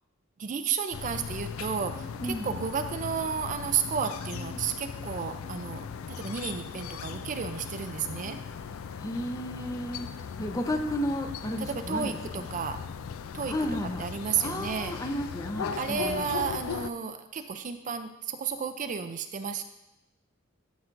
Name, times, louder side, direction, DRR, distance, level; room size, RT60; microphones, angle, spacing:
voice 1, 0.4-8.4 11.6-12.8 13.3-13.5 14.0-14.9 15.8-19.6, right 6 dB, 40° right, 9 dB, 0.4 m, -32 dB
sound 1, 0.9-16.9, left 6 dB, 85° left, 0.4 m, -38 dB
sound 2, 1.8-8.4, left 2 dB, 65° left, 1.5 m, -52 dB
voice 2, 2.2-2.6 9.0-10.1 10.4-12.5 13.5-14.1 14.4-16.2, left 1 dB, 15° left, 5 dB, 0.5 m, -33 dB
12.0 x 5.9 x 2.5 m, 0.93 s
head